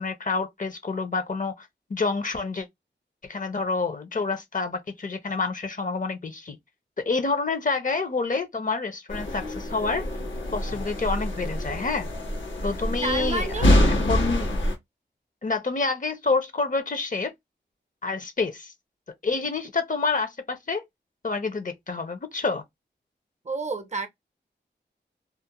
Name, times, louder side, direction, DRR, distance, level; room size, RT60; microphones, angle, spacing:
voice 1, 0.0-2.7 3.2-6.6 7.0-10.0 10.5-12.1 12.6-14.5 15.4-17.3 18.0-18.7 19.2-20.8 21.2-22.6, left 4 dB, 45° left, 0.6 m, -28 dB
sound 1, 9.1-14.7, left 1 dB, 80° left, 0.8 m, -25 dB
voice 2, 13.0-13.7 23.4-24.1, right 3 dB, 35° right, 0.5 m, -29 dB
2.4 x 2.0 x 2.8 m
wide cardioid pair, 55°, 19 cm